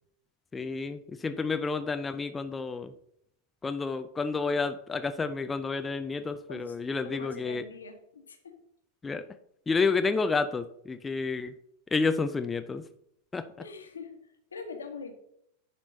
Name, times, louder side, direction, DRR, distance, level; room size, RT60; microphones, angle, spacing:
voice 1, 0.5-2.9 3.6-7.6 9.0-9.2 9.7-11.5 11.9-12.8 13.3-13.5, left 4 dB, 15° left, 9 dB, 0.5 m, -30 dB
voice 2, 6.5-8.6 13.6-14.2 14.5-15.1, left 4 dB, 70° left, 6 dB, 1.4 m, -43 dB
10.5 x 4.4 x 5.3 m, 0.74 s
figure-of-eight pair, 90°, 0 cm